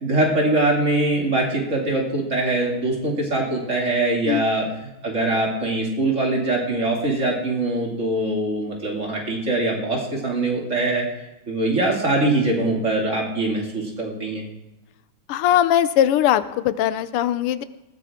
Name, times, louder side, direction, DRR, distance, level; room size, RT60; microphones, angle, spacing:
voice 1, 0.0-4.7 5.0-11.0 11.5-14.4, right 2 dB, 35° right, -1 dB, 2.8 m, -22 dB
voice 2, 15.3-17.6, left 11 dB, 90° left, 14 dB, 1.6 m, -20 dB
19.5 x 14.5 x 3.6 m, 1.0 s
omnidirectional pair, 2.4 m